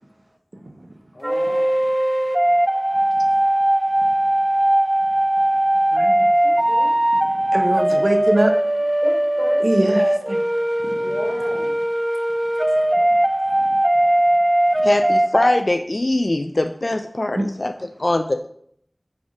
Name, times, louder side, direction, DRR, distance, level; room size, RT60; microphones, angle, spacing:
voice 1, 0.6-0.9 3.3-3.4 4.0-4.2 5.9-6.3 7.2-8.5 9.6-10.4 10.8-11.2 13.6-13.8 14.8-14.9 17.4-17.5, right 1 dB, 70° right, 0.8 m, -24 dB
voice 2, 1.1-1.7 6.4-7.0 9.0-10.1 10.9-11.7, left 1 dB, 85° left, 1.3 m, -33 dB
sound 1, 1.2-15.6, right 1 dB, 30° right, 0.3 m, -19 dB
voice 3, 14.8-17.7 18.0-18.5, left 1 dB, 65° left, 0.3 m, -22 dB
6.2 x 3.6 x 4.8 m
wide cardioid pair, 45°, 0 cm